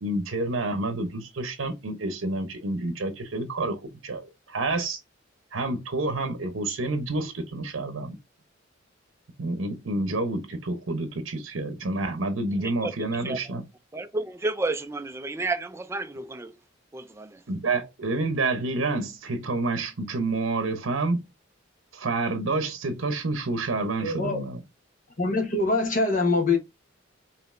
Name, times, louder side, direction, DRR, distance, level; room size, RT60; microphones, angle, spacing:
voice 1, 0.0-5.0 5.5-8.2 9.4-13.6 17.5-21.2 21.9-24.6, right 2 dB, 75° right, 0.7 m, -29 dB
voice 2, 12.6-12.9 13.2-13.4 13.9-16.5 16.9-17.4, right 3 dB, 15° right, 0.3 m, -31 dB
voice 3, 24.0-24.4 25.2-26.6, left 3 dB, 40° left, 1.1 m, -24 dB
5.1 x 2.9 x 2.5 m
head